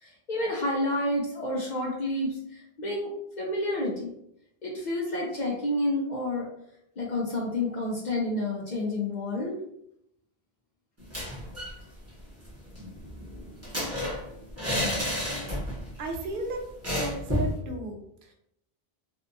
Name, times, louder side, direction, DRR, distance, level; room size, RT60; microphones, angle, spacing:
voice 1, 0.0-3.1 3.4-4.1 4.6-6.5 7.0-9.6, left 1 dB, 55° left, -2 dB, 0.6 m, -29 dB
sound 1, 11.0-11.8 12.1-12.2 12.5-15.9 16.2-16.3 16.8-17.6, left 1 dB, 15° right, 0.8 m, -31 dB
voice 2, 16.0-16.6 16.9-18.3, right 1 dB, 65° right, 2 dB, 0.7 m, -35 dB
2.6 x 2.3 x 2.5 m, 0.77 s
omnidirectional pair, 1.0 m